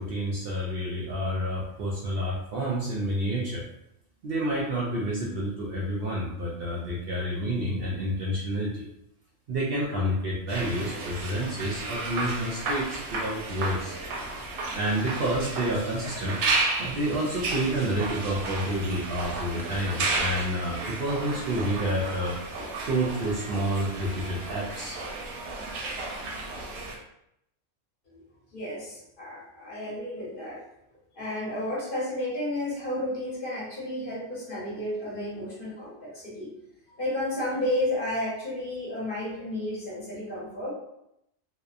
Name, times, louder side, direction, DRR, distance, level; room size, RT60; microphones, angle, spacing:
voice 1, 0.0-3.6 4.2-8.9 9.5-13.9 14.7-16.4 16.8-22.3 22.9-25.0, right 1 dB, 60° right, -4 dB, 0.6 m, -29 dB
sound 1, 10.5-27.0, right 3 dB, 85° right, 1.0 m, -33 dB
voice 2, 28.5-30.6 31.2-36.5 37.0-40.7, left 1 dB, 45° left, -6 dB, 1.0 m, -32 dB
2.8 x 2.0 x 2.4 m, 0.80 s
omnidirectional pair, 1.3 m